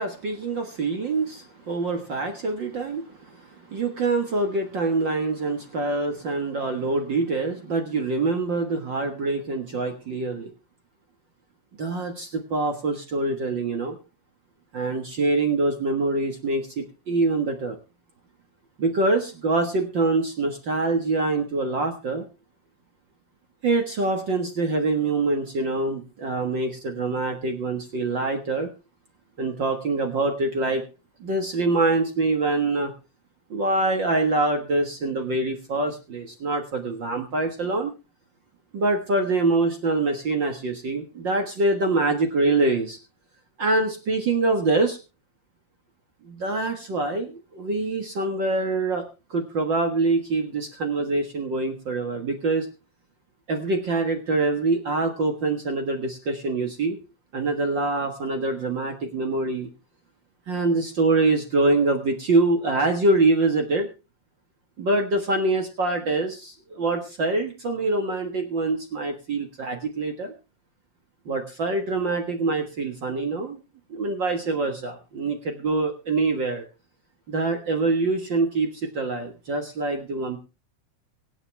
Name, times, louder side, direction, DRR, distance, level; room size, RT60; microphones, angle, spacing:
voice 1, 0.0-10.5 11.8-14.0 14.7-17.8 18.8-22.2 23.6-28.7 29.4-30.8 31.2-32.9 33.5-37.9 38.7-43.0 43.6-45.0 46.2-49.0 49.3-52.7 53.5-57.0 57.3-59.7 60.5-63.9 64.8-70.3 71.2-73.6 73.9-76.6 77.3-80.4, right 3 dB, 45° right, 4 dB, 1.8 m, -25 dB
24.5 x 8.3 x 3.3 m, 0.31 s
omnidirectional pair, 3.3 m